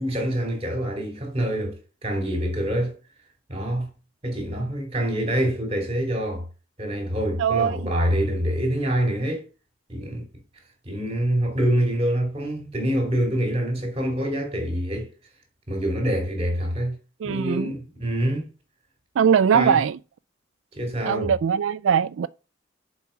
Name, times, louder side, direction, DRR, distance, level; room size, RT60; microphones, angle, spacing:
voice 1, 0.0-3.0 3.5-3.9 4.2-6.4 6.8-9.5 9.9-10.2 10.8-15.1 15.7-17.0 17.2-18.5 19.5-19.8 20.8-21.3, right 1 dB, 30° right, 3.0 m, -25 dB
voice 2, 7.4-7.8 17.2-17.7 19.2-20.0 21.1-22.3, right 7 dB, 90° right, 0.3 m, -21 dB
7.1 x 4.8 x 5.8 m
head